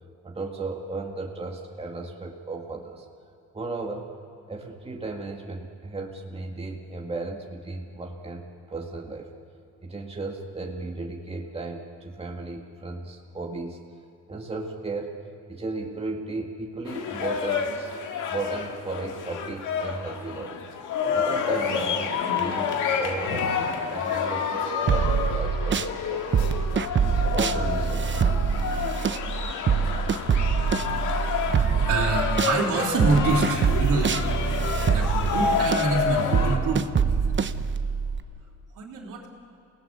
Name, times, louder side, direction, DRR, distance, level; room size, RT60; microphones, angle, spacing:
voice 1, 0.2-3.1 3.5-4.1 4.5-9.3 9.8-13.8 14.3-15.2 15.5-17.9 18.3-20.6 21.1-26.5 27.1-28.3, right 3 dB, 20° right, 0 dB, 2.0 m, -35 dB
sound 1, 16.9-36.6, left 6 dB, 85° left, 2.0 m, -29 dB
sound 2, 24.9-25.9 26.3-32.6 33.0-38.2, right 6 dB, 40° right, 0.9 m, -24 dB
voice 2, 30.8-34.2 34.9-36.8 37.3-37.5 38.7-39.3, right 3 dB, 90° right, 0 dB, 3.5 m, -27 dB
28.5 x 18.5 x 6.9 m, 2.7 s
cardioid pair, 90°, 30 cm